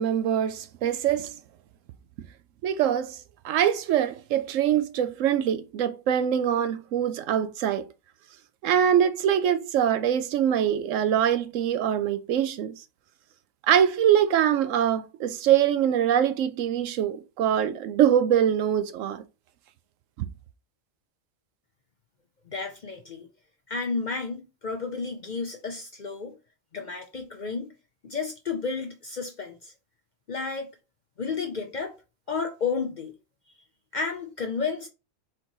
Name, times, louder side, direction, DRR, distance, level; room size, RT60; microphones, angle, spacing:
voice 1, 0.0-1.4 2.6-3.2 3.4-7.9 8.6-12.7 13.7-19.2, right 9 dB, 80° right, 0.9 m, -23 dB
voice 2, 22.5-23.3 23.7-26.3 26.7-27.7 28.0-29.7 30.3-30.7 31.2-31.9 32.3-33.1 33.9-34.9, left 4 dB, 50° left, 0.6 m, -32 dB
4.4 x 2.9 x 3.9 m
omnidirectional pair, 1.3 m